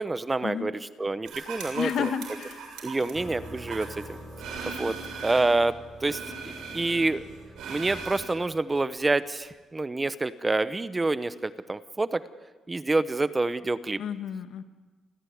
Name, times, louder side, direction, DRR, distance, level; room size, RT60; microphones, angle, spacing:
voice 1, 0.0-2.1 2.8-4.0 4.6-5.0 5.2-6.2 6.7-7.2 7.7-12.2 12.7-14.0, right 2 dB, 20° right, 14 dB, 0.9 m, -27 dB
sound 1, 1.2-5.6 6.0-8.2, right 5 dB, 75° right, 7.2 m, -39 dB
voice 2, 1.7-2.6 14.0-14.6, left 8 dB, 65° left, 9 dB, 1.7 m, -31 dB
sound 2, 3.1-9.0, right 1 dB, 5° left, 3.8 m, -45 dB
29.5 x 15.0 x 9.5 m, 1.3 s
cardioid pair, 115°, 0 cm